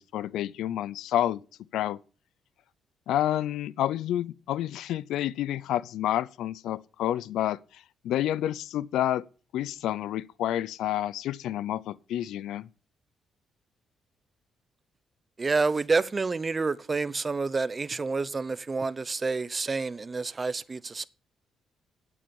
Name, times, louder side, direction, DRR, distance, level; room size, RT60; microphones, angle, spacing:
voice 1, 0.0-1.4 1.7-2.0 3.1-9.2 9.5-12.7, left 12 dB, 85° left, 0.5 m, -29 dB
voice 2, 15.4-21.1, right 4 dB, 30° right, 0.6 m, -28 dB
8.8 x 8.5 x 7.0 m
cardioid pair, 90°, 0 cm